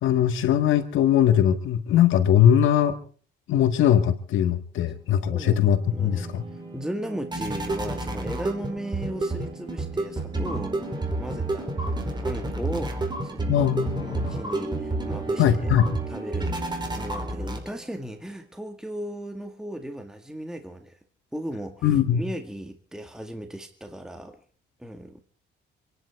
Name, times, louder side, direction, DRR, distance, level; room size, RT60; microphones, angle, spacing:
voice 1, 0.0-3.0 3.5-6.4 13.5-14.4 15.4-15.9 21.8-22.2, left 10 dB, 80° left, 9 dB, 1.8 m, -21 dB
sound 1, 5.2-18.0, right 2 dB, 20° right, 4.5 m, -30 dB
voice 2, 5.3-5.6 5.9-13.6 14.0-15.7 16.1-16.6 16.9-21.0 21.3-24.4 24.8-25.2, right 1 dB, 5° right, 5 dB, 1.9 m, -36 dB
27.0 x 11.0 x 4.7 m, 0.44 s
cardioid pair, 90°, 20 cm